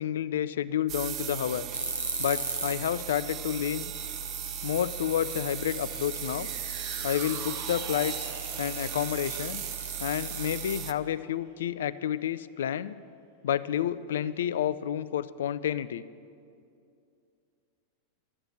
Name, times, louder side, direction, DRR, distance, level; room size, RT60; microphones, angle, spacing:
voice 1, 0.0-1.6 2.2-3.9 4.6-6.5 7.0-8.3 8.6-9.6 10.0-13.0 13.4-16.0, left 10 dB, 60° left, 16 dB, 0.3 m, -30 dB
sound 1, 0.9-10.9, right 11 dB, 35° right, 0.4 m, -37 dB
sound 2, 1.7-2.8 3.1-3.2 3.7-3.8 3.9-7.2 8.0-11.2, right 1 dB, 85° right, 0.9 m, -38 dB
sound 3, 5.9-12.3 12.7-12.8, right 4 dB, 60° right, 1.3 m, -46 dB
11.0 x 8.8 x 6.0 m, 2.5 s
figure-of-eight pair, 90°, 0 cm